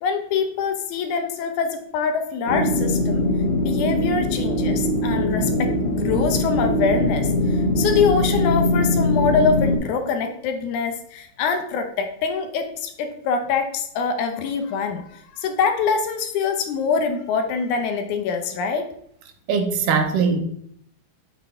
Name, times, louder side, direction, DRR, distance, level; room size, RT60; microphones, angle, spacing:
voice 1, 0.0-3.3 3.6-18.9, left 5 dB, 75° left, 6 dB, 2.0 m, -24 dB
sound 1, 2.5-9.8, left 1 dB, 55° left, 1.5 m, -21 dB
voice 2, 19.5-20.4, right 5 dB, 85° right, 6 dB, 2.3 m, -20 dB
7.6 x 4.0 x 3.6 m, 0.69 s
omnidirectional pair, 3.7 m